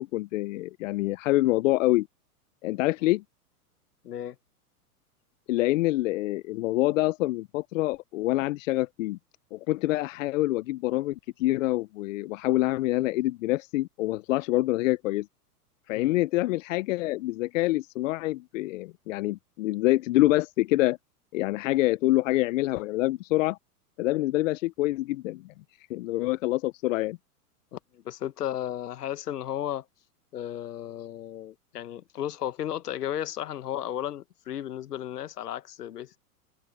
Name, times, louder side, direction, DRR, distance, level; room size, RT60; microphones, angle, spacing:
voice 1, 0.0-2.1 2.6-3.2 5.5-9.2 9.5-15.3 15.9-21.0 21.3-23.6 24.0-25.5 25.9-27.2, left 18 dB, 55° left, 1.0 m, -26 dB
voice 2, 4.0-4.4 15.9-16.2 27.7-29.9 30.3-36.2, left 11 dB, 75° left, 1.4 m, -34 dB
open air
hypercardioid pair, 115°, 47 cm